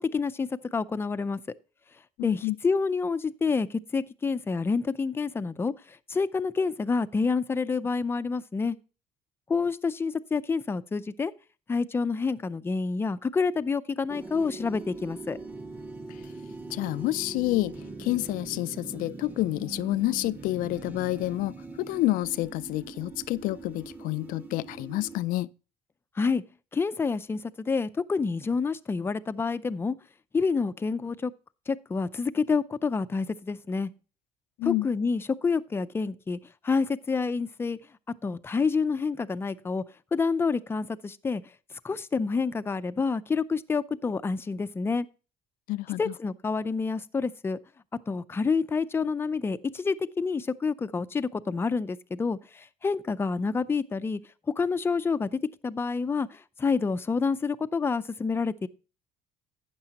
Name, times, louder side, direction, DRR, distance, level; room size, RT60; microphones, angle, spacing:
voice 1, 0.0-1.4 2.2-8.8 9.5-11.3 11.7-15.4 26.2-26.4 26.7-30.0 30.3-31.3 31.7-33.9 34.6-36.4 36.6-37.8 38.2-39.8 40.1-41.4 41.8-45.1 46.0-47.6 48.1-54.2 54.5-58.7, left 4 dB, 15° left, 0.5 m, -28 dB
voice 2, 2.2-2.6 16.1-16.2 16.7-25.5 34.6-34.9 45.7-46.1, left 18 dB, 70° left, 0.4 m, -29 dB
sound 1, 14.1-25.2, right 3 dB, 10° right, 1.0 m, -42 dB
12.0 x 8.8 x 2.9 m
cardioid pair, 125°, 15 cm